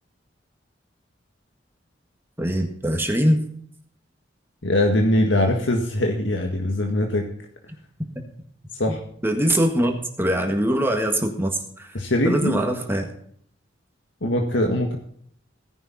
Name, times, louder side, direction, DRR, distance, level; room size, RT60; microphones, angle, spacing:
voice 1, 2.4-3.4 8.2-8.3 8.9-9.0 9.2-12.0 12.3-13.1, equal, 10° right, 3 dB, 1.7 m, -23 dB
voice 2, 4.6-7.3 8.7-9.0 11.9-12.6 14.2-15.0, left 1 dB, 80° left, 2 dB, 1.7 m, -22 dB
17.0 x 10.5 x 4.2 m, 0.63 s
head